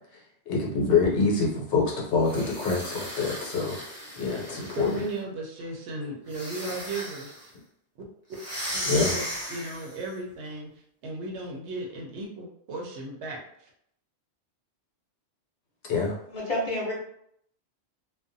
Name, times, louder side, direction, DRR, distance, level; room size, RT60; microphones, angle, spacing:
voice 1, 0.5-3.8 4.2-4.9 8.8-9.2 15.9-16.2, left 4 dB, 70° left, -3 dB, 1.0 m, -25 dB
sound 1, 2.2-5.2 6.3-7.4 8.3-10.0, equal, 20° right, 0.4 m, -36 dB
voice 2, 4.6-7.5 8.7-10.7 11.0-13.7, right 2 dB, 70° right, -1 dB, 0.9 m, -36 dB
voice 3, 16.3-16.9, left 1 dB, 35° left, -5 dB, 0.7 m, -29 dB
2.4 x 2.2 x 2.6 m, 0.70 s
omnidirectional pair, 1.2 m